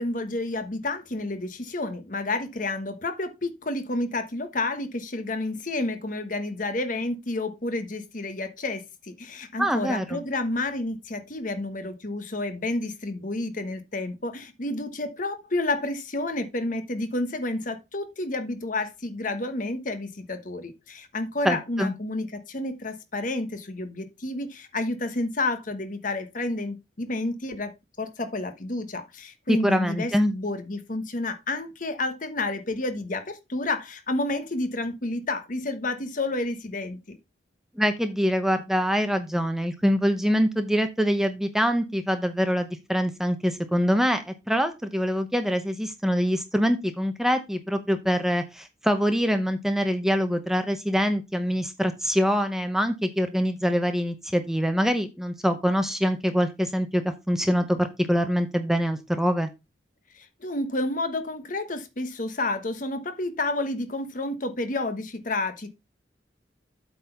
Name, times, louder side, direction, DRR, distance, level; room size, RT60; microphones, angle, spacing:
voice 1, 0.0-27.7 28.0-37.2 60.1-65.7, left 2 dB, 45° left, 1.2 m, -30 dB
voice 2, 9.6-10.2 21.4-21.9 29.5-30.3 37.8-59.5, equal, ahead, 0.8 m, -24 dB
8.3 x 4.0 x 5.7 m
head